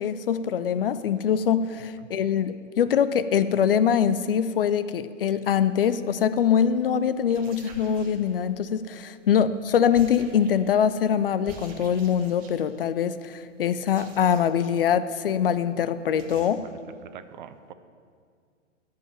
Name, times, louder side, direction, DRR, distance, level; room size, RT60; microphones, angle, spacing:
voice 1, 0.0-16.6, left 8 dB, 50° left, 14 dB, 0.5 m, -23 dB
sound 1, 6.4-6.6 7.2-8.7 9.9-10.8 11.5-12.8 13.8-14.7 15.0-15.1 15.4-15.5 15.7-15.8 16.2-16.5, right 3 dB, 25° right, 1.4 m, -47 dB
voice 2, 16.5-17.7, right 9 dB, 40° right, 11 dB, 0.6 m, -44 dB
12.5 x 5.6 x 9.2 m, 2.1 s
figure-of-eight pair, 115°, 37 cm